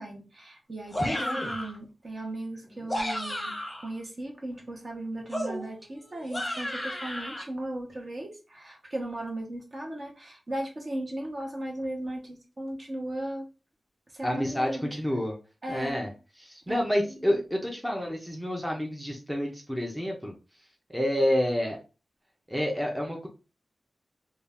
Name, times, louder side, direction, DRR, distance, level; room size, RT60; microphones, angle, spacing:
voice 1, 0.0-13.5 14.1-14.9 15.6-16.1 16.7-17.4, right 1 dB, 40° right, 1 dB, 0.9 m, -37 dB
sound 1, 0.9-1.8 2.7-3.9 5.3-7.4, left 1 dB, 15° left, 0.9 m, -33 dB
voice 2, 1.0-1.5 14.2-15.3 15.7-16.1 16.4-20.3 20.9-21.8 22.5-23.3, equal, 5° right, 0 dB, 0.6 m, -29 dB
2.7 x 2.3 x 3.4 m, 0.32 s
wide cardioid pair, 120°, 0 cm